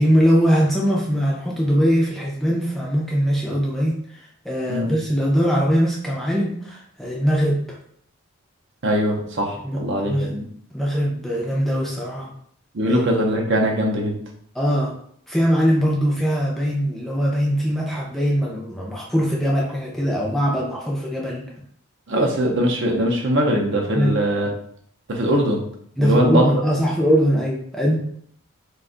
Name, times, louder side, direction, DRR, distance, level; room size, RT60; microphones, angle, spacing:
voice 1, 0.0-7.8 9.6-10.4 10.7-12.3 12.9-13.0 14.5-14.9 15.3-21.4 23.9-24.1 26.0-27.9, equal, ahead, -4 dB, 0.4 m, -21 dB
voice 2, 8.8-10.4 12.7-14.2 22.1-24.5 25.1-25.6 26.0-26.4, equal, 55° right, 0 dB, 0.6 m, -21 dB
2.5 x 2.3 x 3.7 m, 0.63 s
head